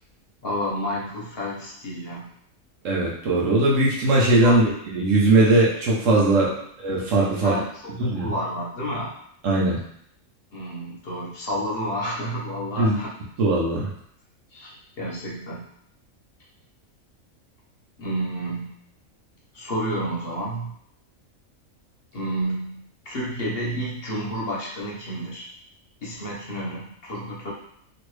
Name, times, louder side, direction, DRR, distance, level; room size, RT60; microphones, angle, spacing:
voice 1, 0.4-2.3 4.4-4.7 6.4-6.6 7.4-9.1 10.5-13.1 14.5-15.6 18.0-18.8 19.5-20.7 22.1-25.5 26.0-27.5, equal, 50° left, -4 dB, 0.9 m, -30 dB
voice 2, 2.8-6.5 6.8-7.6 8.0-8.3 9.4-9.8 12.8-13.0 13.4-13.9, right 2 dB, 70° right, -4 dB, 1.1 m, -20 dB
3.0 x 2.6 x 3.1 m, 0.68 s
omnidirectional pair, 1.4 m